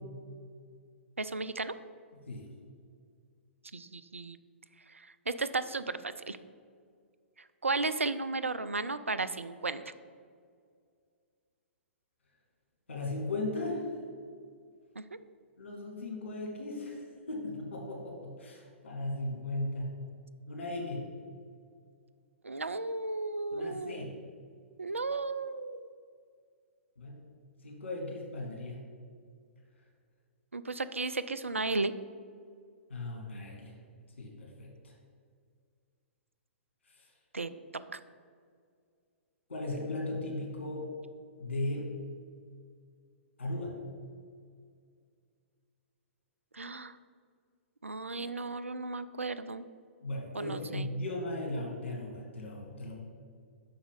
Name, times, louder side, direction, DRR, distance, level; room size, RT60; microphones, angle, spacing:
voice 1, 1.2-1.7 3.7-4.4 4.9-6.4 7.6-9.9 15.0-15.1 22.4-24.1 24.8-25.9 30.5-31.9 37.3-37.5 37.9-38.0 46.5-47.0 47.8-49.6 50.3-50.9, right 3 dB, 85° right, 12 dB, 0.3 m, -34 dB
voice 2, 12.9-13.9 15.6-17.0 17.3-19.9 20.5-21.0 23.5-24.1 27.0-27.2 27.6-28.8 32.9-33.7 34.2-34.7 37.0-37.1 39.5-40.9 41.4-41.9 43.4-43.8 50.0-52.9, left 2 dB, 65° left, -1 dB, 1.6 m, -37 dB
5.9 x 4.8 x 5.3 m, 2.2 s
figure-of-eight pair, 115°, 7 cm